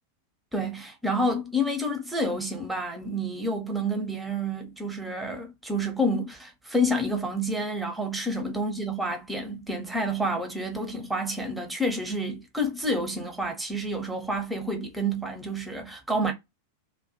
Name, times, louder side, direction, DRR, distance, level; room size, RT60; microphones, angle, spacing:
voice 1, 0.5-16.3, equal, 5° right, 0.7 m, -29 dB
2.3 x 2.2 x 2.6 m
figure-of-eight pair, 90°, 0 cm